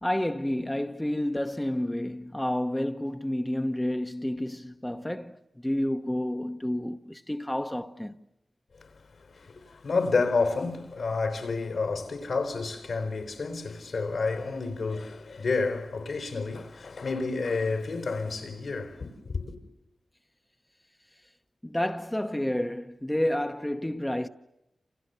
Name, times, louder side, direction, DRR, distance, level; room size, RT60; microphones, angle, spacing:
voice 1, 0.0-8.2 21.6-24.3, left 1 dB, 10° left, 1.0 m, -30 dB
voice 2, 9.2-19.6, left 4 dB, 80° left, 4.1 m, -30 dB
28.5 x 28.0 x 6.9 m
cardioid pair, 50°, 0 cm